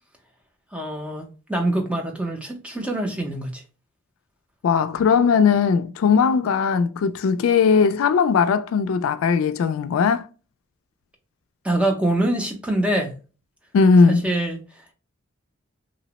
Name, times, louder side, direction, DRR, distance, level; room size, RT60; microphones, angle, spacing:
voice 1, 0.7-3.6 11.6-13.1 14.1-14.9, right 1 dB, 5° right, 0.5 m, -25 dB
voice 2, 4.6-10.2 13.7-14.3, left 5 dB, 80° left, 0.3 m, -18 dB
2.8 x 2.0 x 2.8 m
head